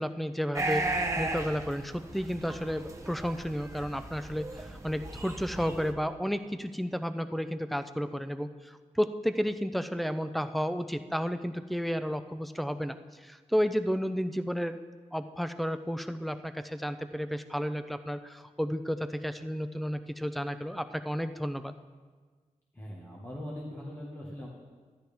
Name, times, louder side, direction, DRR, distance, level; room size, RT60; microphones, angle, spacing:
voice 1, 0.0-13.0 13.2-14.8 15.1-21.7, equal, ahead, 11 dB, 0.4 m, -32 dB
sound 1, 0.5-5.9, right 2 dB, 20° right, 0.8 m, -36 dB
voice 2, 22.7-24.5, left 1 dB, 15° left, -5 dB, 1.5 m, -41 dB
13.0 x 10.5 x 3.5 m, 1.5 s
wide cardioid pair, 150°, 14 cm